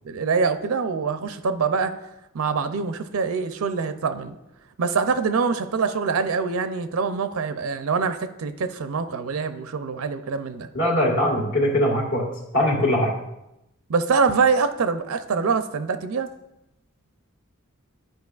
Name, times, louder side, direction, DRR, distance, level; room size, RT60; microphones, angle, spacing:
voice 1, 0.0-1.9 2.3-4.4 4.8-10.7 13.9-16.3, right 5 dB, 85° right, 10 dB, 0.5 m, -24 dB
voice 2, 10.7-12.2 12.5-13.1, left 1 dB, 65° left, -2 dB, 1.7 m, -21 dB
10.5 x 4.9 x 2.4 m, 0.88 s
head